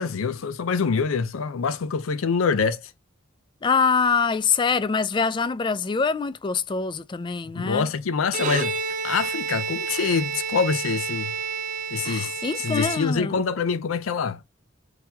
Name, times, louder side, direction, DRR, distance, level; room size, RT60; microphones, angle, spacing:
voice 1, 0.0-2.9 7.5-8.8 9.0-11.3 11.9-14.4, left 5 dB, 90° left, 0.5 m, -25 dB
voice 2, 3.6-7.9 12.0-13.4, left 5 dB, 25° left, 0.3 m, -24 dB
Bowed string instrument, 8.2-13.5, right 5 dB, 40° right, 0.5 m, -30 dB
3.9 x 2.8 x 2.7 m
head